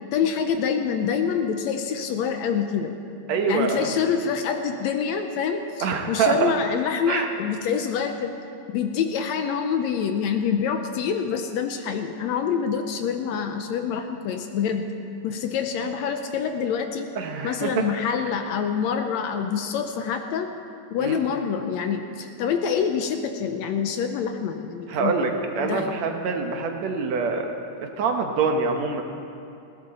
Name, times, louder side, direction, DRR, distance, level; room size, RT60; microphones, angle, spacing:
voice 1, 0.1-2.9 3.5-8.3 8.7-14.9 15.2-17.1 17.4-20.5 20.9-25.2 25.6-25.9, left 7 dB, 75° left, 6 dB, 1.8 m, -26 dB
voice 2, 3.3-3.9 5.8-6.5 7.1-7.3 17.2-17.8 21.0-21.2 24.9-27.5 28.0-29.0, right 5 dB, 65° right, 4 dB, 2.1 m, -25 dB
20.0 x 16.0 x 4.2 m, 2.5 s
omnidirectional pair, 3.5 m